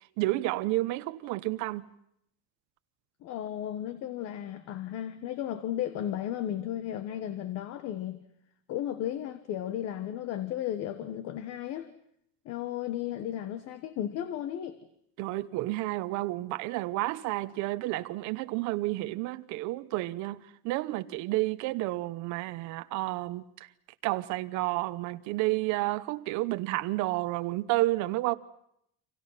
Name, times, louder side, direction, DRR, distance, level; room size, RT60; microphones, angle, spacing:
voice 1, 0.2-1.8 15.2-23.4 24.0-28.3, right 18 dB, 65° right, 0.9 m, -30 dB
voice 2, 3.2-8.2 8.7-11.9 12.4-14.8, left 11 dB, 55° left, 1.4 m, -34 dB
30.0 x 26.0 x 5.8 m
cardioid pair, 165°, 31 cm